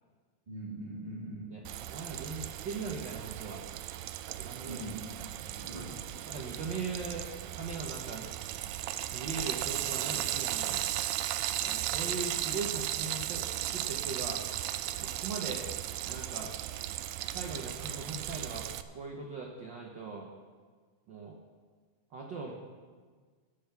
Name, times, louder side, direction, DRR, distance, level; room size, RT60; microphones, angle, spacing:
voice 1, 0.5-1.6 4.6-6.0, right 1 dB, 15° right, -5 dB, 2.8 m, -42 dB
voice 2, 1.5-3.6 4.4-4.8 6.3-7.2 7.5-8.3 9.1-10.9 11.6-13.4 13.7-14.4 15.0-15.6 16.1-16.5 17.3-18.6 18.9-20.3 21.1-21.4 22.1-22.5, right 4 dB, 65° right, 1 dB, 1.1 m, -40 dB
Frying (food), 1.6-18.8, right 13 dB, 80° right, 1.7 m, -36 dB
16.0 x 7.0 x 6.9 m, 1.5 s
omnidirectional pair, 3.5 m